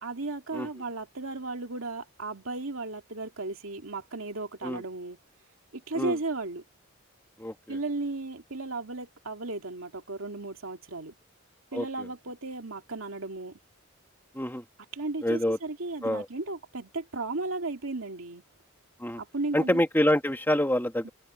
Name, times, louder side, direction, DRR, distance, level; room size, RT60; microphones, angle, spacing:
voice 1, 0.0-5.2 5.7-6.6 7.7-11.1 11.7-13.6 14.9-18.4 19.2-19.8 21.0-21.1, right 3 dB, 85° right, 2.4 m, -35 dB
voice 2, 7.4-7.8 11.7-12.1 14.3-14.6 15.2-15.6 16.0-16.3 19.0-19.2 19.5-21.1, left 1 dB, 10° left, 1.9 m, -26 dB
open air
head